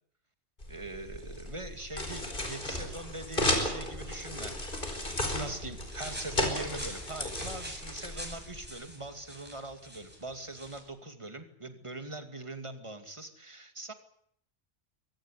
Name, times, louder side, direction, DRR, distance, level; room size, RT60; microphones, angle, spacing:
sound 1, 0.6-8.7, left 1 dB, 45° left, 4.8 m, -34 dB
voice 1, 0.7-4.6 4.8-5.1 5.3-13.9, right 2 dB, 25° right, 8 dB, 2.5 m, -42 dB
sound 2, 5.7-10.8, equal, 10° right, 7.8 m, -46 dB
23.5 x 18.0 x 10.0 m, 0.68 s
omnidirectional pair, 1.2 m